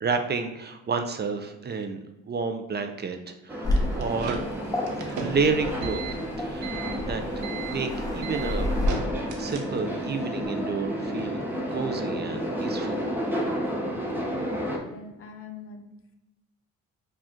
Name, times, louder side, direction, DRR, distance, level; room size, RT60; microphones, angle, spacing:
voice 1, 0.0-2.0 2.3-4.5 4.9-8.7 9.4-11.4 11.7-13.0, right 5 dB, 35° right, 7 dB, 0.5 m, -30 dB
sound 1, 3.5-14.8, equal, 5° right, 0.9 m, -31 dB
Waves surf, 3.6-8.9, left 1 dB, 10° left, 1.2 m, -31 dB
sound 2, 3.8-10.0, right 5 dB, 85° right, 0.8 m, -37 dB
voice 2, 14.3-16.1, left 5 dB, 45° left, 5 dB, 0.7 m, -44 dB
4.7 x 2.4 x 4.3 m, 0.96 s
cardioid pair, 90°, 30 cm